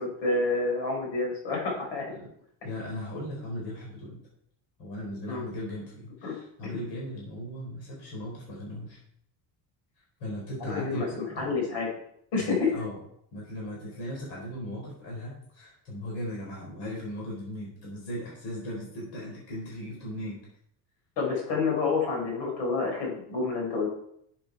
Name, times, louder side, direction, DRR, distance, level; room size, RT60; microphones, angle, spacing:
voice 1, 0.0-2.1 5.3-5.4 6.2-6.3 10.6-12.0 12.3-12.7 21.2-23.9, left 4 dB, 80° left, 0 dB, 5.2 m, -28 dB
voice 2, 2.6-4.2 4.8-9.0 10.2-11.5 12.4-13.0 13.3-20.4, equal, 60° left, -3 dB, 4.4 m, -37 dB
12.0 x 7.6 x 4.6 m, 0.70 s
cardioid pair, 175°, 44 cm